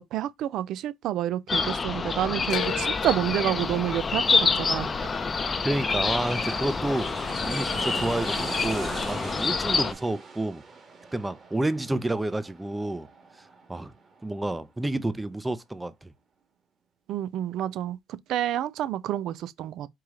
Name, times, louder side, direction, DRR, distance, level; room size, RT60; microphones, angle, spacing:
voice 1, 0.1-5.1 17.1-18.0 18.3-19.9, right 12 dB, 70° right, 0.6 m, -29 dB
sound 1, 1.5-9.9, left 4 dB, 30° left, 0.6 m, -27 dB
sound 2, 2.5-6.7 7.0-7.7 9.0-9.1, left 14 dB, 70° left, 0.3 m, -39 dB
sound 3, 3.8-14.9 15.2-15.3, right 4 dB, 35° right, 1.7 m, -42 dB
voice 2, 5.6-7.2 7.5-10.6 11.1-13.1 13.7-13.9 14.2-16.1, right 1 dB, 10° right, 0.6 m, -29 dB
4.7 x 3.0 x 3.7 m
cardioid pair, 95°, 0 cm